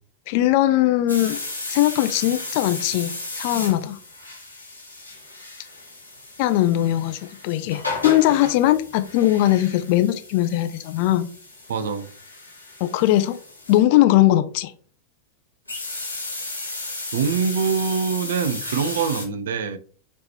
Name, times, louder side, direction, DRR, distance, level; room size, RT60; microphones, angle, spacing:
voice 1, 0.3-1.4 1.7-4.0 6.4-11.3 12.8-13.4 13.7-14.7, left 14 dB, 45° left, 0.4 m, -20 dB
sound 1, 1.1-13.8 15.7-19.2, left 2 dB, 85° left, 1.3 m, -34 dB
voice 2, 11.7-12.1 17.1-19.8, right 6 dB, 60° right, 0.4 m, -24 dB
3.5 x 3.0 x 3.0 m
figure-of-eight pair, 90°, 0 cm